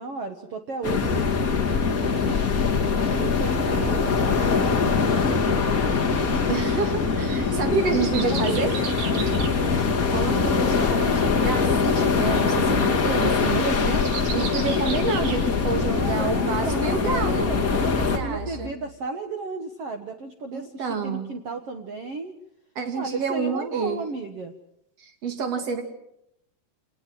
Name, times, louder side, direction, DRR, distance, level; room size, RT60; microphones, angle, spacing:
voice 1, 0.0-2.4 2.9-6.1 7.4-7.8 8.2-9.5 14.3-14.6 15.9-22.3 22.9-24.5, right 4 dB, 80° right, 6 dB, 1.3 m, -34 dB
sound 1, 0.8-18.2, left 5 dB, 35° left, 1.5 m, -23 dB
sound 2, 3.8-18.7, left 4 dB, 60° left, 0.6 m, -40 dB
sound 3, 6.1-16.1 16.5-16.6, right 6 dB, 65° right, 4.6 m, -38 dB
voice 2, 6.5-8.8 9.7-9.8 10.1-14.0 14.3-17.5 18.1-18.7 20.5-21.3 22.7-24.0 25.0-25.8, right 4 dB, 40° right, 6 dB, 3.3 m, -28 dB
27.0 x 20.0 x 7.7 m, 0.77 s
omnidirectional pair, 4.8 m